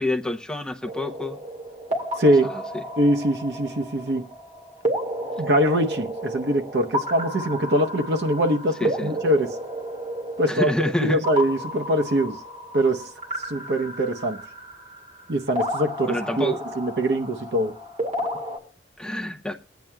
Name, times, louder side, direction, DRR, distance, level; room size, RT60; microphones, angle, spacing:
voice 1, 0.0-1.4 2.5-2.6 8.8-9.2 10.5-11.2 16.1-16.6 19.0-19.6, left 1 dB, 5° left, 0.6 m, -27 dB
sound 1, 0.8-18.6, equal, 40° right, 2.2 m, -32 dB
voice 2, 2.2-2.5 3.0-4.3 5.4-9.5 10.4-10.7 11.0-12.4 12.7-13.1 13.5-14.4 15.3-17.8, right 1 dB, 65° right, 0.8 m, -23 dB
21.5 x 9.1 x 2.3 m
head